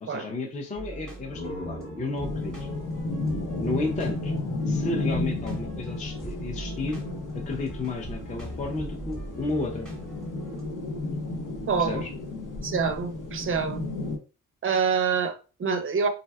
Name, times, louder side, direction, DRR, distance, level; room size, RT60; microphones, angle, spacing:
voice 1, 0.0-2.5 3.6-4.3 4.7-7.0 7.3-9.9 11.8-12.1, left 3 dB, 20° left, 0.4 m, -32 dB
sound 1, 0.7-10.6, right 2 dB, ahead, 0.8 m, -41 dB
sound 2, 1.0-4.7, left 1 dB, 40° left, 0.9 m, -42 dB
sound 3, 2.2-14.2, left 2 dB, 60° left, 0.6 m, -33 dB
voice 2, 11.7-12.0 12.6-13.8 14.6-16.1, right 6 dB, 40° right, 0.4 m, -26 dB
3.4 x 2.2 x 2.2 m
wide cardioid pair, 130°, 35 cm